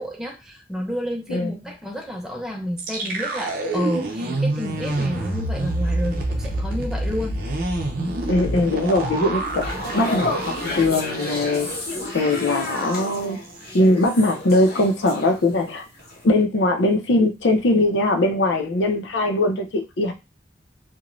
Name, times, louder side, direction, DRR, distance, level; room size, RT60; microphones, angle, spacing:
voice 1, 0.0-7.4, equal, 5° right, 0.5 m, -30 dB
sound 1, 2.8-11.8 12.1-12.3 12.6-13.0, right 1 dB, 55° right, 0.6 m, -27 dB
voice 2, 8.3-11.7 12.1-13.4 13.7-15.8 16.2-20.1, left 2 dB, 85° left, 0.6 m, -21 dB
sound 2, 9.5-15.7 16.0-16.2, left 2 dB, 60° left, 1.0 m, -31 dB
2.5 x 2.1 x 3.0 m
head